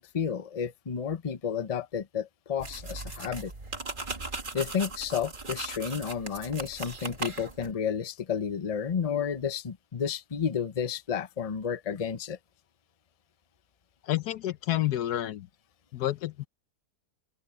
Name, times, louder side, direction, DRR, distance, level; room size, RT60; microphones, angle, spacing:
voice 1, 0.0-3.5 4.5-12.4, left 7 dB, 30° left, 0.7 m, -31 dB
sound 1, 2.6-7.7, right 3 dB, 30° right, 1.8 m, -38 dB
voice 2, 14.0-15.5 15.9-16.5, left 14 dB, 80° left, 1.3 m, -29 dB
open air
omnidirectional pair, 1.7 m